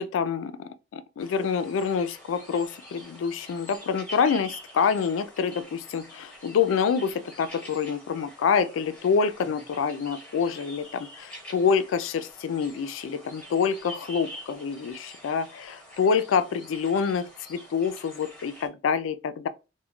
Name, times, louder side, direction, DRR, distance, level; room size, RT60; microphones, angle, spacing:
voice 1, 0.0-19.5, left 6 dB, 80° left, 0.3 m, -27 dB
sound 1, 1.2-18.7, equal, 5° left, 1.0 m, -46 dB
3.6 x 2.1 x 2.2 m
head